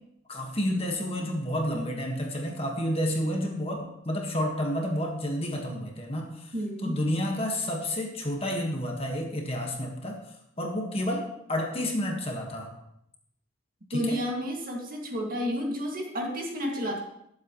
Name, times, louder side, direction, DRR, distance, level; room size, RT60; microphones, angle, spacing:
voice 1, 0.3-6.5 6.8-10.2 10.6-12.7 13.9-14.2, equal, 30° left, 1 dB, 1.7 m, -30 dB
voice 2, 6.5-7.0 13.9-17.0, equal, 45° right, 0 dB, 2.3 m, -31 dB
21.0 x 7.8 x 3.2 m, 0.77 s
head